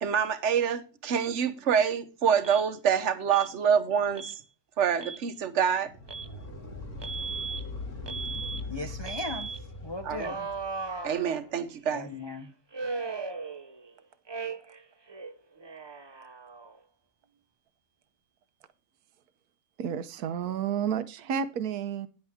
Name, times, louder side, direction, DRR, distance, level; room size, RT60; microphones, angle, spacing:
voice 1, 0.0-4.3 4.8-5.9 10.0-10.3 11.0-12.1, right 7 dB, 55° right, 1.3 m, -26 dB
Alarm, 2.4-2.6 3.3-3.5 4.1-4.4 4.9-5.2 6.1-6.3 7.0-7.6 8.1-8.6 9.1-9.6 10.2-11.7 12.7-13.9 14.3-14.8 15.1-16.8, right 4 dB, 40° right, 0.4 m, -37 dB
sound 1, 5.8-11.0, left 2 dB, 85° left, 2.7 m, -40 dB
voice 2, 8.7-9.5 9.8-10.5 11.9-12.5, left 2 dB, 25° left, 0.6 m, -37 dB
voice 3, 19.8-22.1, right 8 dB, 85° right, 1.4 m, -31 dB
10.0 x 9.0 x 3.6 m
omnidirectional pair, 1.6 m